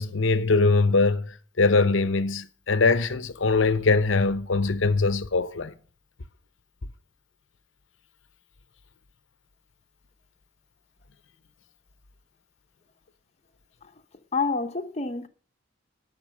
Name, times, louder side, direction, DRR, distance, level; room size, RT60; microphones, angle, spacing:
voice 1, 0.0-5.7, left 3 dB, 80° left, 0.8 m, -22 dB
voice 2, 14.3-15.3, left 4 dB, 35° left, 0.9 m, -28 dB
12.5 x 5.9 x 7.7 m
head